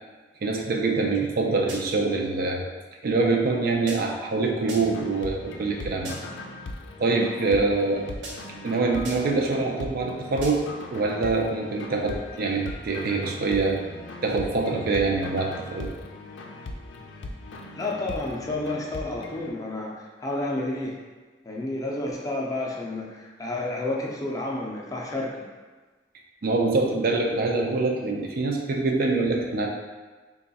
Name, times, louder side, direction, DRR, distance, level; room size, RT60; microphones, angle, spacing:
voice 1, 0.4-2.6 3.0-6.2 7.0-8.1 8.6-13.8 14.2-15.9 26.4-29.7, right 3 dB, 55° right, 1 dB, 0.4 m, -25 dB
sound 1, 1.7-2.1 3.9-4.3 4.7-5.1 6.0-6.5 8.2-8.7 9.0-9.5 10.4-10.8, right 2 dB, 85° right, 0.9 m, -41 dB
sound 2, 4.7-19.5, left 2 dB, 85° left, 0.4 m, -39 dB
voice 2, 17.8-21.0 21.4-25.4, left 2 dB, 20° left, -3 dB, 0.5 m, -30 dB
3.1 x 2.3 x 4.0 m, 1.3 s
head